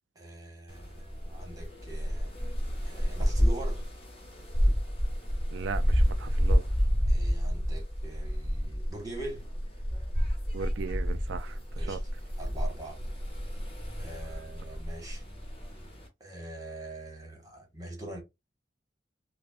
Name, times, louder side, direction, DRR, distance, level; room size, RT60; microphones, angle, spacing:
voice 1, 0.1-2.3 2.8-3.8 7.1-9.5 11.8-12.0 12.4-13.0 14.0-15.2 16.2-18.2, right 2 dB, 20° right, 1.3 m, -43 dB
sound 1, 0.7-16.1, equal, 30° left, 1.5 m, -30 dB
voice 2, 5.5-6.7 10.5-11.6 11.9-12.0, right 5 dB, 85° right, 0.3 m, -37 dB
5.0 x 2.2 x 2.3 m
head